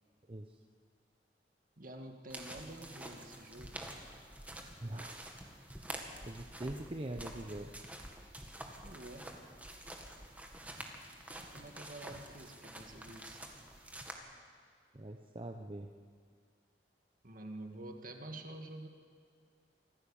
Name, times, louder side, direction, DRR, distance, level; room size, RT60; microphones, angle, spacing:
voice 1, 1.8-3.7 8.8-9.3 11.5-13.4 17.2-18.9, right 1 dB, 50° right, 4 dB, 2.0 m, -48 dB
sound 1, 2.3-14.1, right 1 dB, 10° right, 1.8 m, -48 dB
voice 2, 4.8-5.2 6.2-7.7 14.9-15.9, right 1 dB, 30° right, 4 dB, 0.8 m, -42 dB
25.0 x 15.0 x 7.2 m, 2.1 s
head